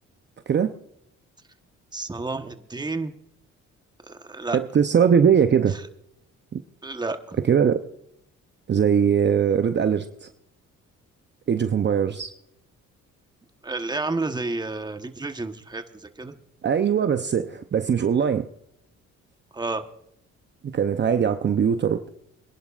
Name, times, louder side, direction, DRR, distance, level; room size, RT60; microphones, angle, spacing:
voice 1, 1.9-3.1 4.1-4.6 6.8-7.4 13.6-16.4 19.5-19.8, right 3 dB, 15° right, 7 dB, 1.2 m, -30 dB
voice 2, 4.5-5.8 6.5-6.6 7.4-7.8 8.7-10.3 11.5-12.3 16.6-18.5 20.6-22.1, right 7 dB, 35° right, 8 dB, 0.7 m, -21 dB
25.5 x 11.0 x 2.5 m, 0.75 s
cardioid pair, 90°, 30 cm